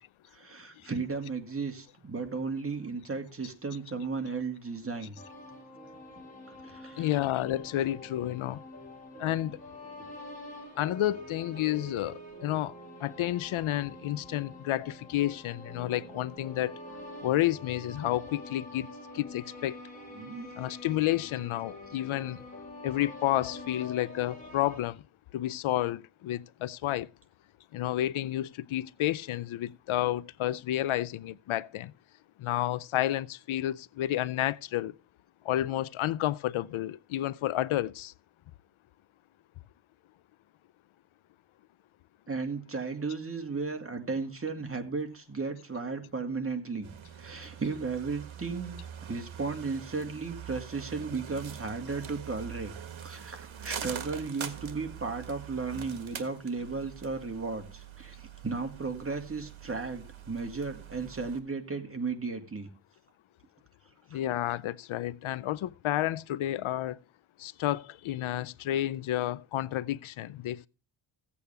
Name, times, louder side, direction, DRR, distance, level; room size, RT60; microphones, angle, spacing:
voice 1, 0.3-5.2 6.5-7.1 20.1-20.5 42.3-46.9 47.2-48.8 49.1-52.7 53.0-62.7 64.1-64.2, right 4 dB, 30° right, 2.2 m, -35 dB
sound 1, 5.2-24.8, left 1 dB, 15° left, 5.2 m, -46 dB
voice 2, 7.0-8.6 9.2-9.6 10.8-12.7 13.0-16.7 17.2-18.9 19.1-19.7 20.6-22.4 22.8-25.0 25.3-27.1 27.7-31.9 32.4-34.9 35.5-38.1 64.1-67.0 67.4-70.7, left 13 dB, 85° left, 0.6 m, -30 dB
sound 2, 46.8-61.4, right 9 dB, 75° right, 1.7 m, -44 dB
15.5 x 8.4 x 3.4 m
wide cardioid pair, 100°, 48 cm